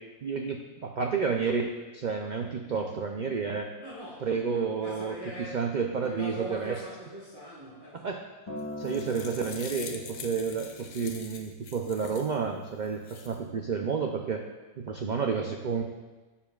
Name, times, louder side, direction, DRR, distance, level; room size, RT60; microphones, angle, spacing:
voice 1, 0.2-3.7 4.2-6.8 7.9-8.2 8.8-14.4 14.8-15.8, right 5 dB, 90° right, 3 dB, 0.4 m, -30 dB
voice 2, 3.8-4.3 4.8-5.7 6.0-8.1, right 1 dB, 15° right, -8 dB, 1.4 m, -41 dB
Acoustic guitar, 8.5-12.8 13.6-13.7, left 1 dB, 20° left, 1.1 m, -43 dB
sound 1, 8.6-12.4 12.8-13.4, left 6 dB, 70° left, 1.1 m, -44 dB
11.0 x 6.8 x 2.4 m, 1.2 s
omnidirectional pair, 1.5 m